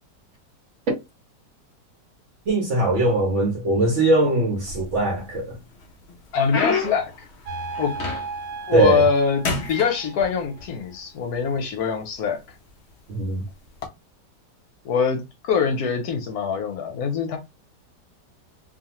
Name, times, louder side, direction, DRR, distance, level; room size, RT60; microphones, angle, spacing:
voice 1, 2.5-5.6 8.7-9.0 13.1-13.4, right 2 dB, 60° right, 0.8 m, -20 dB
sound 1, 4.6-5.3 5.8-8.5 8.9-9.2 9.4-10.7 11.5-11.6 12.3-12.5 13.7-13.9, left 4 dB, 85° left, 0.5 m, -29 dB
voice 2, 6.3-7.3 7.8-7.9 8.7-12.4 14.8-17.4, left 6 dB, 70° left, 1.0 m, -23 dB
sound 2, 7.5-10.6, right 4 dB, 85° right, 1.3 m, -35 dB
2.6 x 2.4 x 2.9 m
omnidirectional pair, 1.9 m